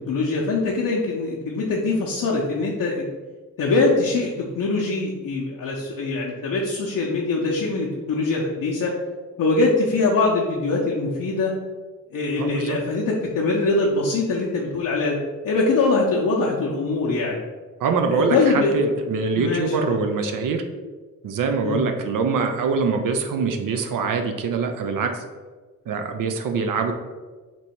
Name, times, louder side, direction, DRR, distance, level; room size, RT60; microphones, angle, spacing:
voice 1, 0.1-3.1 3.6-8.9 9.4-11.5 12.1-15.2 15.4-17.4 18.1-18.7 19.4-19.9 21.6-21.8, left 3 dB, 75° left, -4 dB, 0.6 m, -23 dB
voice 2, 12.4-12.8 17.8-20.6 21.2-25.2 25.9-26.9, right 4 dB, 75° right, 5 dB, 0.5 m, -24 dB
3.0 x 2.7 x 4.3 m, 1.3 s
cardioid pair, 60°, 33 cm